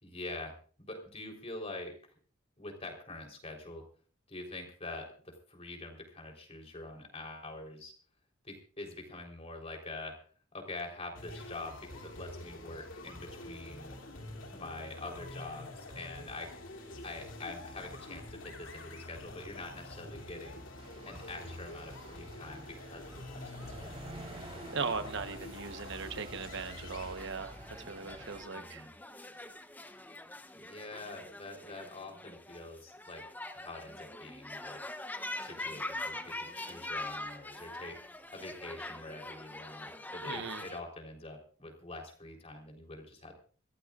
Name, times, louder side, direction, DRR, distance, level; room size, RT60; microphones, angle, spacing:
voice 1, 0.0-2.1 2.6-3.8 4.3-7.9 8.4-10.1 10.5-14.0 14.5-16.5 17.0-20.6 21.0-24.1 28.5-28.9 30.5-33.2 33.5-34.8 35.4-38.0 38.3-43.3, left 2 dB, 30° left, 2 dB, 3.9 m, -45 dB
sound 1, 11.1-27.1, left 1 dB, 70° left, 2.8 m, -47 dB
sound 2, 20.8-28.4, right 2 dB, 30° right, 3.8 m, -50 dB
voice 2, 24.7-27.5 27.9-28.9 40.3-40.6, right 4 dB, 60° right, 8 dB, 1.1 m, -38 dB
sound 3, 27.2-40.8, left 2 dB, 10° left, 0.8 m, -43 dB
26.5 x 14.0 x 2.5 m, 0.42 s
head